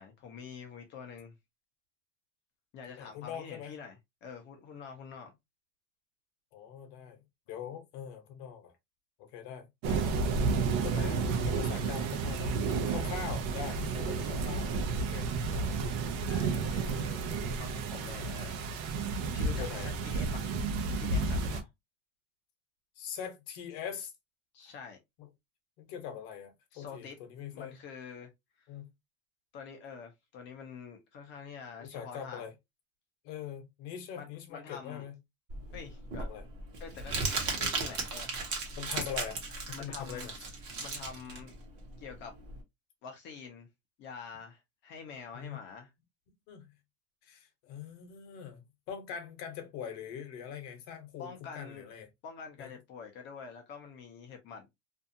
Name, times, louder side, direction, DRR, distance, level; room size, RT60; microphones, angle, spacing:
voice 1, 0.0-1.3 2.7-5.3 9.9-10.2 16.3-17.2 17.6-18.9 19.3-20.6 21.0-21.7 24.5-25.0 26.7-27.2 27.5-28.3 28.6-28.7 29.5-32.5 34.1-35.0 35.7-36.3 36.8-38.3 39.7-40.3 40.8-41.5 42.0-42.3 43.0-43.7 44.0-45.9 51.2-51.9 52.2-54.7, left 6 dB, 30° left, 0.4 m, -46 dB
voice 2, 2.9-3.7 6.5-8.7 9.2-9.7 10.6-12.6 12.9-14.8 15.1-15.8 19.6-19.9 23.0-24.1 25.8-27.7 28.7-28.9 31.8-32.5 33.2-35.1 36.2-36.4 38.8-40.3 45.3-45.6 46.5-46.7 47.2-52.1 52.6-52.7, left 8 dB, 50° left, 0.9 m, -43 dB
sound 1, 9.8-21.6, right 4 dB, 75° right, 0.7 m, -31 dB
Crumpling crinkling, 35.5-42.6, right 4 dB, 40° right, 1.0 m, -36 dB
2.6 x 2.3 x 2.6 m
supercardioid pair, 165°, 43 cm